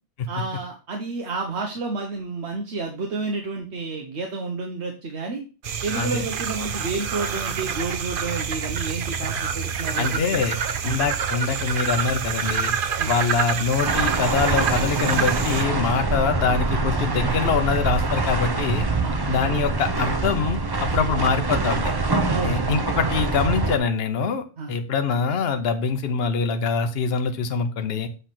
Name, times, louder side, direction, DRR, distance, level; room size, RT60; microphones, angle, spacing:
voice 1, 0.3-5.4 5.8-10.4 10.8-11.0 13.0-13.1 16.0-16.1 19.0-19.2 22.3-22.7 24.6-24.8, right 4 dB, 75° right, 2 dB, 1.2 m, -30 dB
sound 1, 5.6-15.6, right 6 dB, 55° right, 0.8 m, -27 dB
voice 2, 9.9-10.6 10.8-12.7 13.0-18.9 19.3-21.9 22.4-28.1, left 5 dB, 65° left, 8 dB, 1.0 m, -24 dB
sound 2, 13.8-23.8, right 3 dB, 25° right, 0.6 m, -24 dB
8.2 x 3.3 x 5.8 m, 0.34 s
omnidirectional pair, 1.2 m